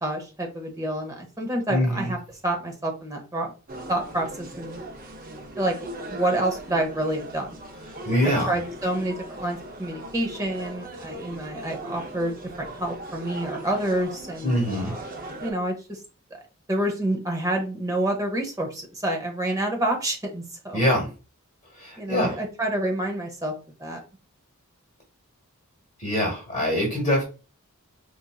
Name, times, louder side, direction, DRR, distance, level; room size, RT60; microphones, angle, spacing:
voice 1, 0.0-2.2 2.4-3.5 3.9-4.8 5.6-5.7 6.1-7.5 8.2-15.0 15.4-16.0 16.7-20.8 22.0-23.5 23.8-24.0, right 1 dB, 15° right, 2 dB, 0.9 m, -28 dB
voice 2, 1.7-2.1 7.9-8.6 14.4-14.9 20.7-21.1 21.8-22.4 26.0-27.2, equal, 25° left, -3 dB, 1.3 m, -24 dB
sound 1, 3.7-15.5, right 1 dB, 40° right, 0.6 m, -39 dB
4.5 x 2.6 x 2.3 m, 0.32 s
head